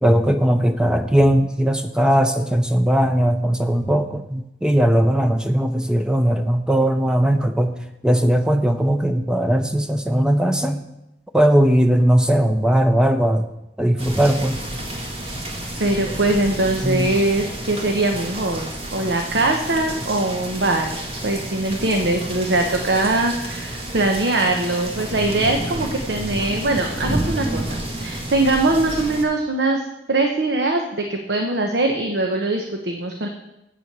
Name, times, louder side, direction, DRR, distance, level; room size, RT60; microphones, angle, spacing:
voice 1, 0.0-7.7 8.0-10.8 11.3-13.4 13.8-14.6 16.8-17.1, right 1 dB, 5° right, 7 dB, 0.5 m, -18 dB
sound 1, 14.0-29.2, right 1 dB, 35° right, 1.8 m, -30 dB
voice 2, 15.8-29.8 30.1-33.3, right 2 dB, 75° right, 3 dB, 0.9 m, -22 dB
8.4 x 7.6 x 6.7 m, 0.89 s
head